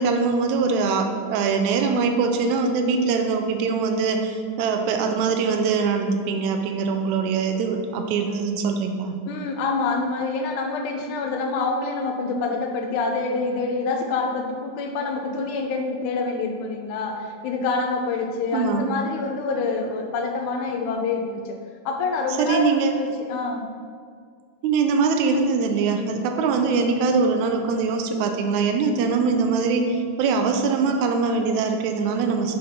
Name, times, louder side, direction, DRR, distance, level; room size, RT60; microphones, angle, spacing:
voice 1, 0.0-9.2 18.5-18.9 22.4-22.9 24.6-32.6, right 4 dB, 80° right, 5 dB, 1.8 m, -22 dB
voice 2, 9.3-21.6 21.9-23.6, left 3 dB, 85° left, 2 dB, 2.1 m, -26 dB
5.7 x 3.3 x 5.5 m, 2.1 s
omnidirectional pair, 3.5 m